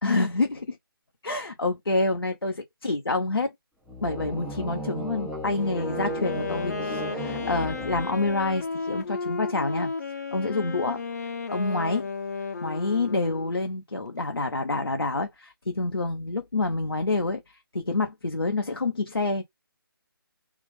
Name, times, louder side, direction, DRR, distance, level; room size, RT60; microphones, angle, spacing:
voice 1, 0.0-0.8 1.2-3.5 4.0-9.9 10.3-11.0 11.5-12.1 12.6-19.4, left 3 dB, 75° left, 0.9 m, -27 dB
sound 1, 3.9-8.6, equal, ahead, 0.6 m, -35 dB
Wind instrument woodwind instrument, 5.6-13.7, left 4 dB, 45° left, 0.8 m, -33 dB
3.5 x 2.6 x 3.2 m
figure-of-eight pair, 145°, 12 cm